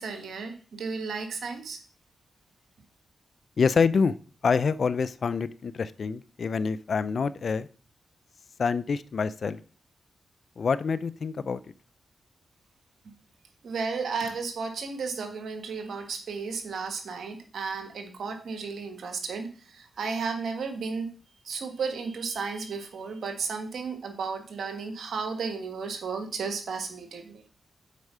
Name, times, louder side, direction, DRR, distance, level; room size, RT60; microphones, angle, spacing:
voice 1, 0.0-1.8 13.6-21.1 21.4-27.5, right 5 dB, 80° right, 5 dB, 1.5 m, -33 dB
voice 2, 3.6-4.1 4.4-7.7 8.6-9.6 10.6-11.6, left 5 dB, 65° left, 16 dB, 0.5 m, -26 dB
8.3 x 4.6 x 5.5 m, 0.39 s
cardioid pair, 55°, 0 cm